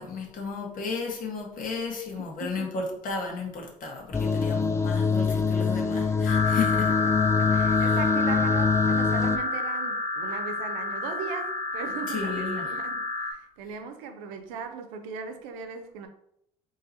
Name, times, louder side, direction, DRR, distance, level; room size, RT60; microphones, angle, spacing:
voice 1, 0.0-6.9 7.7-8.0 12.1-12.7, left 4 dB, 55° left, 0 dB, 1.4 m, -34 dB
voice 2, 2.1-2.8 7.4-16.1, right 6 dB, 90° right, 6 dB, 0.6 m, -38 dB
sound 1, 4.1-9.4, left 5 dB, 15° left, 0.4 m, -24 dB
sound 2, 6.3-13.3, left 3 dB, 80° left, 1.1 m, -29 dB
3.8 x 2.8 x 4.0 m, 0.74 s
supercardioid pair, 75°, 16 cm